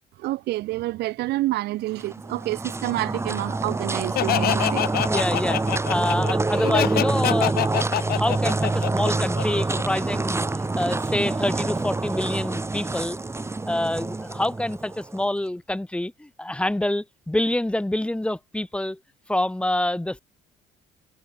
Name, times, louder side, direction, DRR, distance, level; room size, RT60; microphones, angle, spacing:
voice 1, 0.2-4.9, right 17 dB, 80° right, 1.2 m, -28 dB
sound 1, 1.9-15.2, right 3 dB, 15° right, 4.5 m, -26 dB
Laughter, 4.2-9.8, left 13 dB, 65° left, 2.6 m, -26 dB
voice 2, 5.0-5.6 5.9-7.6 7.8-10.4 10.8-13.2 13.7-19.0 19.3-20.2, left 1 dB, 5° left, 1.5 m, -26 dB
cardioid pair, 110°, 17 cm